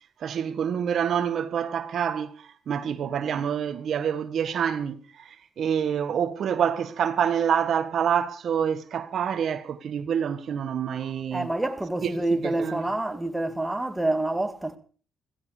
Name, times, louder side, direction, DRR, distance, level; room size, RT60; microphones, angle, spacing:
voice 1, 0.2-11.5 12.0-12.8, right 8 dB, 60° right, 1.5 m, -27 dB
voice 2, 11.3-14.8, right 1 dB, 10° right, 2.3 m, -27 dB
16.0 x 16.0 x 5.0 m
cardioid pair, 90°, 0 cm